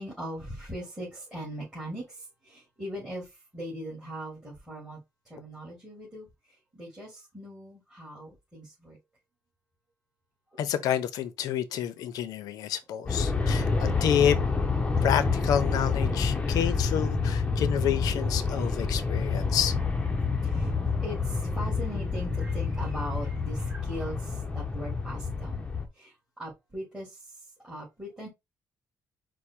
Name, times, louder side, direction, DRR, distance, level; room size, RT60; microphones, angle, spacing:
voice 1, 0.0-2.2 2.4-3.3 3.5-5.0 5.3-6.3 6.7-9.0 18.4-18.9 20.5-20.7 21.0-25.6 26.0-26.1 26.4-27.2 27.6-28.3, equal, 10° right, 2.2 m, -40 dB
voice 2, 10.6-14.4 15.0-19.7, left 9 dB, 80° left, 0.7 m, -29 dB
Aircraft, 13.1-25.9, left 4 dB, 15° left, 0.8 m, -28 dB
4.7 x 2.2 x 4.3 m
cardioid pair, 120°, 6 cm